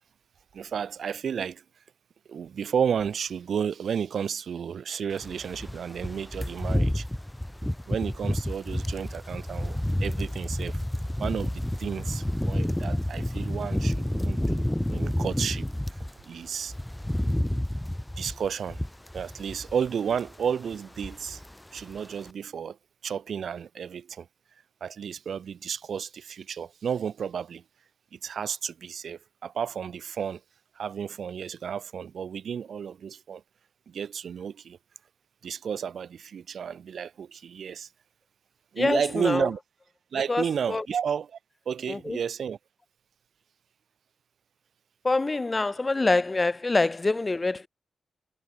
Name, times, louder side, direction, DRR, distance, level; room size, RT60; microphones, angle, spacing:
voice 1, 0.5-1.6 2.3-7.1 7.9-10.8 11.2-15.6 16.2-16.7 18.2-18.8 19.1-21.4 21.7-22.8 23.0-24.3 24.8-27.6 28.1-30.4 30.8-33.4 33.9-34.8 35.4-37.9 38.7-39.6 40.1-41.4 41.7-42.6, right 7 dB, 70° right, 0.9 m, -32 dB
sound 1, 5.2-16.1 16.5-19.9 20.1-20.4 20.7-21.5 21.8-22.0, left 1 dB, 5° left, 0.4 m, -30 dB
voice 2, 38.8-39.5 40.3-40.8 41.9-42.2 45.0-47.7, left 3 dB, 25° left, 1.0 m, -25 dB
wide cardioid pair, 115°, 0 cm